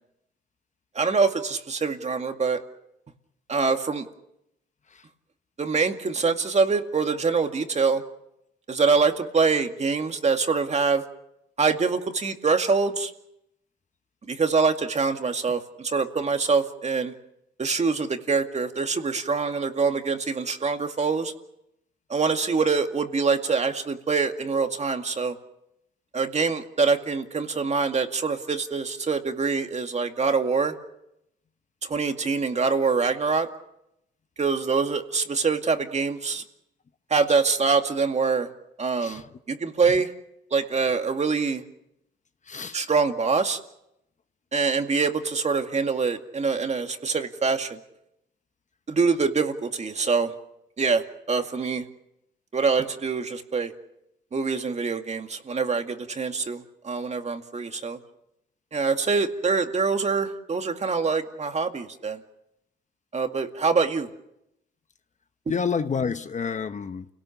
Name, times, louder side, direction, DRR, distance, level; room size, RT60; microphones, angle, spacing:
voice 1, 0.9-2.6 3.5-4.1 5.6-8.0 8.7-11.0 11.6-13.1 14.3-17.1 17.6-21.3 22.1-25.4 26.1-30.8 31.8-33.5 34.4-36.4 37.1-38.5 38.8-39.2 39.5-40.1 40.5-41.6 42.7-43.6 44.5-47.8 48.9-50.3 50.8-51.9 52.5-53.7 54.3-58.0 58.7-62.2 63.1-64.1, right 4 dB, 35° right, 2.2 m, -24 dB
voice 2, 42.5-42.8 65.5-67.1, left 6 dB, 35° left, 1.0 m, -29 dB
29.5 x 18.0 x 7.2 m
cardioid pair, 90°, 20 cm